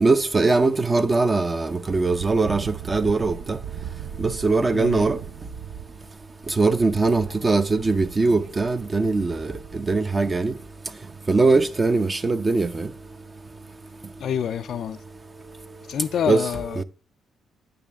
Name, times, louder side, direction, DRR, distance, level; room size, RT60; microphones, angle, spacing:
voice 1, 0.0-3.6 4.2-5.2 6.6-9.5 9.9-10.5 11.3-12.9 16.3-16.4 16.8-16.9, right 3 dB, 25° right, 0.7 m, -21 dB
Wind, 2.0-10.1, right 8 dB, 70° right, 0.6 m, -39 dB
voice 2, 4.7-5.1 14.2-15.0 15.9-16.8, left 9 dB, 65° left, 0.3 m, -27 dB
8.9 x 6.2 x 3.5 m
cardioid pair, 90°, 0 cm